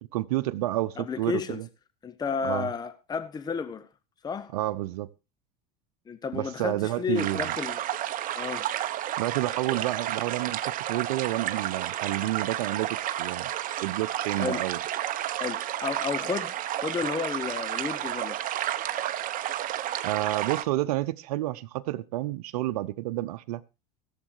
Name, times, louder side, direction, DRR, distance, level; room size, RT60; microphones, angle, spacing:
voice 1, 0.1-1.7 2.4-2.7 4.5-5.1 6.3-7.5 9.2-13.5 13.8-14.8 20.0-23.6, right 16 dB, 85° right, 0.8 m, -30 dB
voice 2, 1.0-1.6 2.0-3.9 4.2-4.5 6.1-7.8 8.3-8.7 14.3-14.7 15.4-18.6, left 6 dB, 20° left, 0.8 m, -32 dB
sound 1, 7.2-20.6, right 12 dB, 45° right, 1.1 m, -31 dB
15.5 x 7.5 x 4.6 m
supercardioid pair, 110°, 19 cm